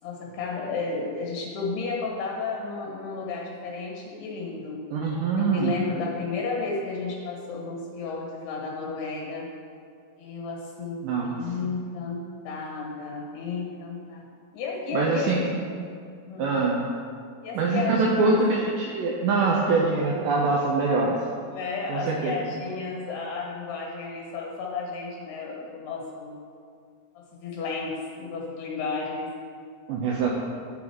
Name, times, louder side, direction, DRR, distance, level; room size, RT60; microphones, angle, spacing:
voice 1, 0.0-4.8 5.4-9.5 10.2-14.3 14.5-15.3 16.3-16.5 17.4-18.4 21.5-26.4 27.4-29.3, left 4 dB, 75° left, -2 dB, 3.2 m, -32 dB
voice 2, 4.9-5.7 11.0-11.7 14.9-15.5 16.4-16.9 17.6-21.2 21.9-22.3 29.9-30.3, right 3 dB, 85° right, -2 dB, 1.9 m, -24 dB
11.5 x 3.9 x 4.5 m, 2.2 s
omnidirectional pair, 4.6 m